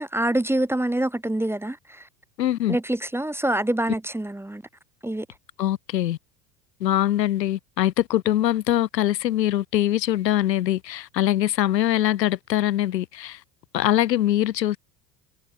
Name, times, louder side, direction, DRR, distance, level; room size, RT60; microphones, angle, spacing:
voice 1, 0.0-2.0 2.7-4.6 5.0-5.3, right 1 dB, 5° right, 1.2 m, -25 dB
voice 2, 2.4-2.8 5.6-6.2 6.8-13.4 13.7-14.8, left 13 dB, 85° left, 1.3 m, -23 dB
hypercardioid pair, 80°, 49 cm